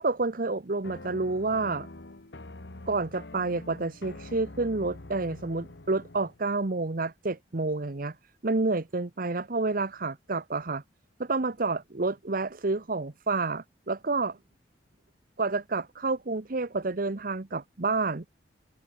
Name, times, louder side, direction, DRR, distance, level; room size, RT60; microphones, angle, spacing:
voice 1, 0.0-1.9 2.9-8.2 8.4-10.8 11.2-14.4 15.4-18.3, right 3 dB, 50° right, 1.0 m, -29 dB
sound 1, 0.8-6.4, left 2 dB, 80° left, 1.6 m, -45 dB
open air
head